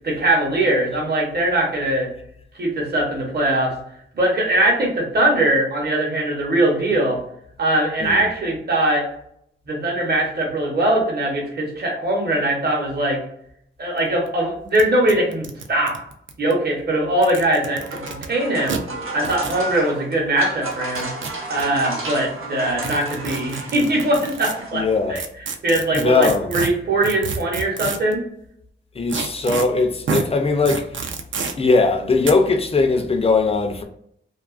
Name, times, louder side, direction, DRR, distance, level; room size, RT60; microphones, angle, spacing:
voice 1, 0.0-2.1 2.6-3.7 4.1-7.2 7.6-9.0 9.7-13.2 13.8-16.0 16.4-18.8 19.1-21.1 21.5-25.2 25.6-28.2, right 1 dB, 50° right, 0.9 m, -21 dB
sound 1, 14.0-14.1 14.3-14.4 14.7-14.8 15.1-16.5 17.1-18.3 18.7-18.8 19.2-19.6 20.7-21.6 22.8-24.5 25.1-28.1 29.1-29.6 30.1-30.2 30.6-31.5 32.2-32.3, right 5 dB, 70° right, 0.4 m, -28 dB
sound 2, 17.5-25.1, right 2 dB, 85° right, 0.8 m, -33 dB
voice 2, 24.7-25.2 25.9-26.5 29.0-30.9 31.6-33.8, left 3 dB, 30° left, 0.4 m, -19 dB
2.6 x 2.3 x 2.3 m
wide cardioid pair, 150°, 21 cm